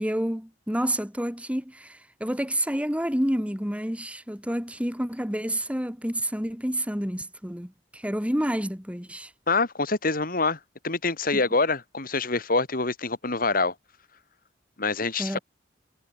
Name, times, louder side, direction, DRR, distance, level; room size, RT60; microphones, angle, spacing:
voice 1, 0.0-9.3 11.3-11.4 15.2-15.4, equal, 5° right, 5.4 m, -29 dB
voice 2, 9.5-13.7 14.8-15.4, left 3 dB, 55° left, 3.5 m, -26 dB
head